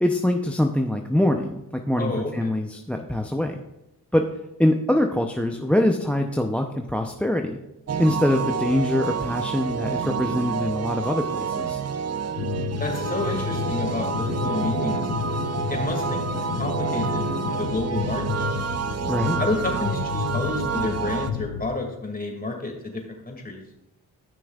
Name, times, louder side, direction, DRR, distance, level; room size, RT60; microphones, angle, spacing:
voice 1, 0.0-3.6 4.1-4.3 4.6-7.6 8.0-11.8 19.1-19.4, left 1 dB, 5° left, 5 dB, 0.6 m, -24 dB
voice 2, 2.0-2.5 12.8-15.0 15.7-18.4 19.4-23.6, left 2 dB, 20° left, 1 dB, 2.3 m, -30 dB
sound 1, 7.9-21.3, right 6 dB, 40° right, 0.7 m, -29 dB
sound 2, 12.4-21.7, left 6 dB, 70° left, 1.0 m, -31 dB
13.5 x 6.1 x 2.4 m, 0.92 s
supercardioid pair, 45°, 40 cm